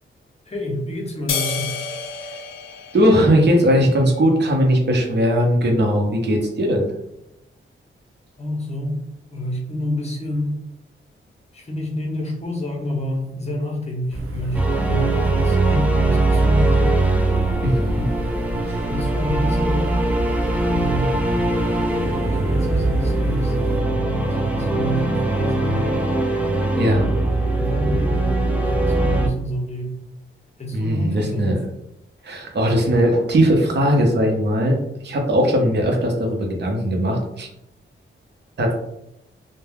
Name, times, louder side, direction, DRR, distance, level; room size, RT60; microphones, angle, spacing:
voice 1, 0.5-1.8 8.4-9.0 9.3-10.5 11.5-17.0 18.9-20.0 20.7-21.3 22.2-26.0 27.5-30.0 30.6-31.6, equal, 30° left, 1 dB, 0.7 m, -28 dB
sound 1, 1.3-3.9, left 5 dB, 75° left, 0.4 m, -30 dB
voice 2, 2.9-6.9 17.6-18.0 26.8-27.1 30.7-31.5 32.2-34.8 35.0-37.5 38.6-38.7, equal, 55° right, 1 dB, 0.7 m, -19 dB
sound 2, 14.1-23.8, right 1 dB, 90° right, 0.4 m, -31 dB
sound 3, 14.5-29.3, right 2 dB, 5° right, 0.3 m, -21 dB
2.2 x 2.1 x 3.3 m, 0.83 s
wide cardioid pair, 110°, 21 cm